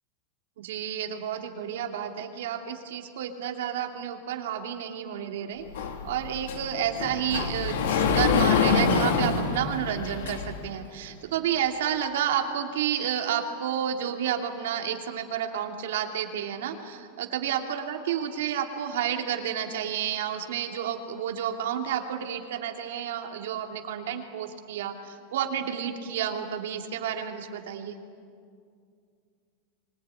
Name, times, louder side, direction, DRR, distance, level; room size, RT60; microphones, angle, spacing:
voice 1, 0.6-5.6 6.0-28.0, right 9 dB, 75° right, 4 dB, 2.8 m, -30 dB
Sliding door, 5.7-10.7, left 5 dB, 85° left, 2.7 m, -26 dB
24.5 x 21.0 x 9.8 m, 2.3 s
supercardioid pair, 175°, 0 cm